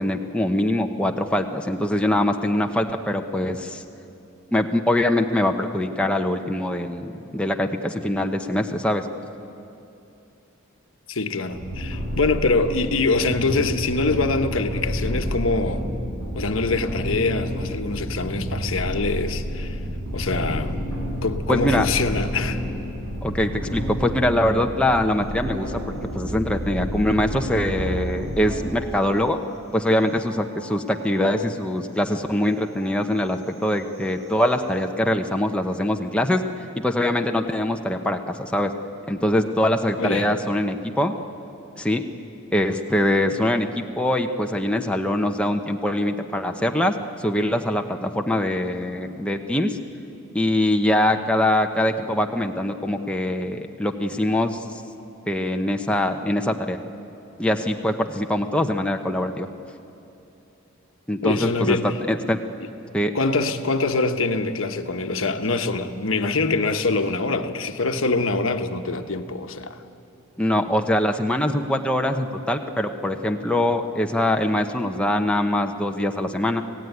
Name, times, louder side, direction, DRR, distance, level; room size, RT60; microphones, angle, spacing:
voice 1, 0.0-3.8 4.5-9.0 21.5-21.9 23.2-25.7 26.1-29.4 29.7-36.4 36.7-38.7 39.1-41.1 41.8-42.1 42.5-49.8 50.3-54.6 55.3-56.8 57.4-59.5 61.1-62.4 62.9-63.1 70.4-76.6, left 1 dB, 5° left, 0.9 m, -23 dB
voice 2, 11.1-15.8 16.4-19.8 20.1-20.8 21.2-22.6 40.0-40.3 61.2-61.9 63.1-69.8, left 3 dB, 70° left, 1.2 m, -24 dB
sound 1, 11.5-28.6, equal, 85° right, 5.8 m, -30 dB
sound 2, 28.1-31.5 32.0-35.0, right 1 dB, 30° right, 2.6 m, -46 dB
26.0 x 17.0 x 9.4 m
head